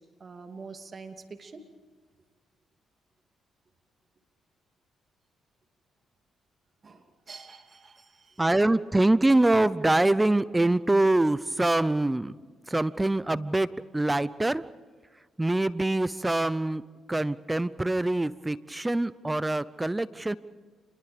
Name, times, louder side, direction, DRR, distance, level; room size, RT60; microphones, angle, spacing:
voice 1, 0.2-1.6 6.8-8.4, right 4 dB, 40° right, 6 dB, 2.6 m, -46 dB
voice 2, 8.4-12.3 12.7-13.7 13.9-14.6 15.4-16.8 17.1-20.4, right 2 dB, 15° right, 17 dB, 0.7 m, -24 dB
28.5 x 21.5 x 5.1 m, 1.5 s
supercardioid pair, 60°, 0 cm